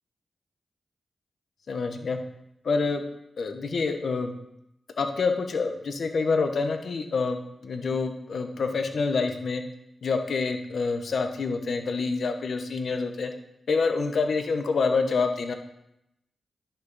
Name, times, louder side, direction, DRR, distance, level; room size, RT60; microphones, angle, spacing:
voice 1, 1.7-2.2 2.6-3.0 3.4-4.3 5.0-9.6 10.0-13.3 13.7-15.5, left 4 dB, 70° left, 6 dB, 0.9 m, -27 dB
10.5 x 5.7 x 4.0 m, 0.82 s
cardioid pair, 55°, 0 cm